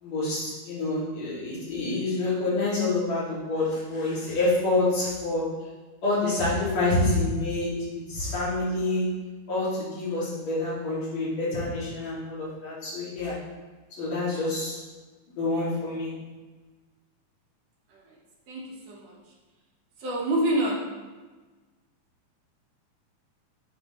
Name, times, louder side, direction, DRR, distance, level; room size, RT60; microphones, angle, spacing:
voice 1, 0.0-5.5 6.0-9.1 9.5-13.4 14.0-14.8 15.4-16.1, left 2 dB, 60° left, -9 dB, 3.5 m, -27 dB
voice 2, 18.5-19.2 20.0-20.9, right 1 dB, 60° right, -2 dB, 2.1 m, -27 dB
9.2 x 4.4 x 3.0 m, 1.3 s
omnidirectional pair, 3.5 m